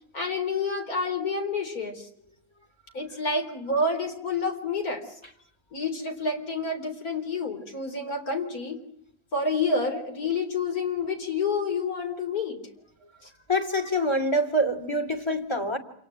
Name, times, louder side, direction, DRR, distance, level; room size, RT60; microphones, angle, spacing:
voice 1, 0.1-2.1 2.9-5.0 5.7-8.8 9.3-12.6 13.2-13.3, left 3 dB, 70° left, 4.5 m, -28 dB
voice 2, 13.5-15.8, equal, 15° left, 3.0 m, -25 dB
27.5 x 18.5 x 8.8 m
omnidirectional pair, 1.6 m